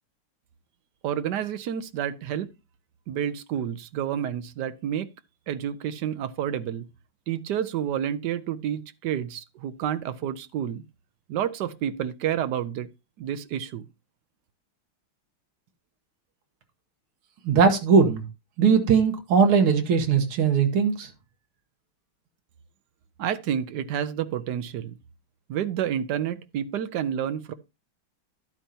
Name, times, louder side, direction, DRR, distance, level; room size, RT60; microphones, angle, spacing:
voice 1, 1.0-2.5 3.1-5.1 5.5-6.9 7.3-10.8 11.3-12.9 13.2-13.9 23.2-24.9 25.5-27.5, right 9 dB, 65° right, 1.1 m, -29 dB
voice 2, 17.5-18.2 18.6-21.1, right 6 dB, 80° right, 2.0 m, -20 dB
11.5 x 8.9 x 2.8 m
omnidirectional pair, 2.3 m